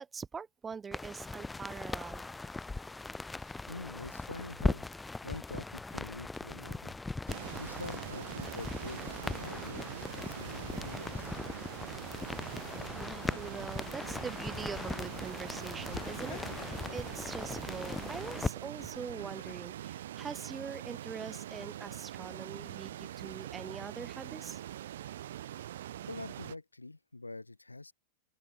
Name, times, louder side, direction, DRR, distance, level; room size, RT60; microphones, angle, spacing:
voice 1, 0.0-2.3 12.9-24.6, right 5 dB, 15° right, 0.6 m, -43 dB
sound 1, 0.9-18.5, left 3 dB, 10° left, 1.1 m, -39 dB
voice 2, 3.4-7.0 7.6-11.3 25.4-25.7 26.1-27.9, left 2 dB, 80° left, 1.1 m, -46 dB
sound 2, 7.3-26.5, right 12 dB, 60° right, 0.3 m, -43 dB
Laughter, 13.3-13.8 14.3-14.4 15.9-17.1 18.6-19.6 20.7-21.9, left 15 dB, 55° left, 3.3 m, -53 dB
open air
figure-of-eight pair, 90°, 0 cm